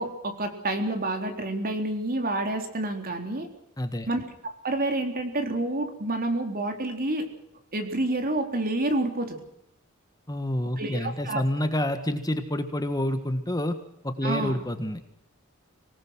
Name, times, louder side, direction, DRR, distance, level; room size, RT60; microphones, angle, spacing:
voice 1, 0.0-3.5 4.1-7.3 7.7-9.4 10.8-11.4 14.2-14.5, right 2 dB, 45° right, 5 dB, 3.9 m, -28 dB
voice 2, 3.8-4.1 10.3-13.8 14.0-15.1, left 1 dB, 15° left, 8 dB, 1.6 m, -28 dB
25.5 x 19.0 x 6.2 m, 0.78 s
head